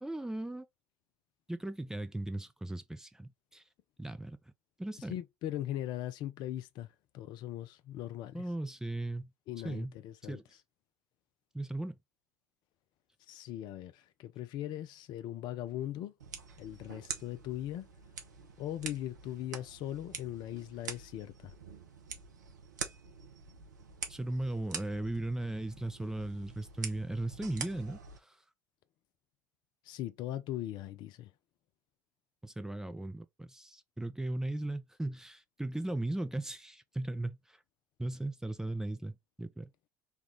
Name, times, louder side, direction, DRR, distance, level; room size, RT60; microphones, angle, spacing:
voice 1, 0.0-0.7 1.5-3.6 4.0-4.4 4.8-5.1 8.3-9.3 9.6-9.9 10.2-10.4 11.5-12.0 24.1-28.4 32.4-37.6 38.0-39.7, right 1 dB, 5° right, 0.4 m, -37 dB
voice 2, 5.1-6.9 7.1-8.4 9.5-10.4 13.3-16.1 16.6-17.9 18.6-21.5 29.9-31.3, left 12 dB, 50° left, 0.4 m, -39 dB
sound 1, 16.2-28.2, right 6 dB, 80° right, 0.7 m, -46 dB
3.4 x 2.3 x 3.7 m
figure-of-eight pair, 65°, 10 cm